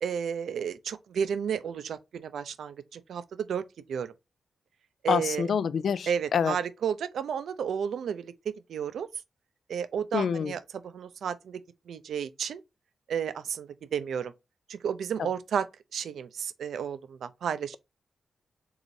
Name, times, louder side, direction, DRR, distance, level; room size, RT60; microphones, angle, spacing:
voice 1, 0.0-4.1 5.0-5.5 6.1-9.1 9.7-11.6 11.9-12.6 13.1-14.3 14.7-15.7 15.9-17.8, right 7 dB, 85° right, 0.5 m, -32 dB
voice 2, 5.1-6.6 10.1-10.5, left 7 dB, 70° left, 0.4 m, -27 dB
4.7 x 3.9 x 2.6 m
wide cardioid pair, 125°, 0 cm